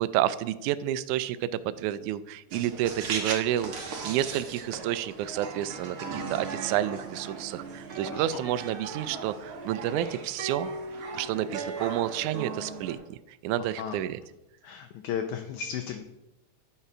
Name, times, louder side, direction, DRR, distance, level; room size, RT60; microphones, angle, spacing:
voice 1, 0.0-10.7 11.1-13.2 13.4-14.2, right 12 dB, 85° right, 13 dB, 1.8 m, -30 dB
sound 1, 2.5-12.9, right 4 dB, 55° right, 1.7 m, -37 dB
voice 2, 8.1-8.4 13.6-14.0 14.6-16.0, left 8 dB, 75° left, 6 dB, 1.9 m, -35 dB
9.8 x 5.5 x 6.0 m, 0.92 s
omnidirectional pair, 3.9 m